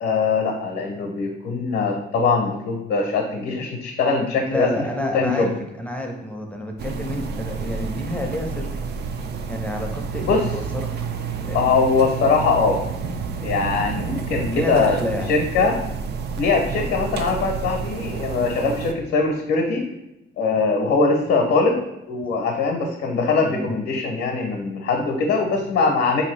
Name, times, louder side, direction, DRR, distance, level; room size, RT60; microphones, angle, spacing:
voice 1, 0.0-4.7 5.1-5.5 10.2-10.4 11.5-12.8 13.4-15.0 15.3-15.8 16.4-19.8 20.4-21.8 22.1-26.2, left 4 dB, 75° left, 1 dB, 0.6 m, -21 dB
voice 2, 4.4-5.5 5.8-8.9 9.5-10.9 11.4-11.6 14.5-15.3 23.4-23.8, left 1 dB, 5° left, 1 dB, 0.5 m, -29 dB
sound 1, 6.8-18.9, right 5 dB, 55° right, 0.4 m, -30 dB
3.9 x 2.6 x 3.1 m, 0.93 s
cardioid pair, 90°, 20 cm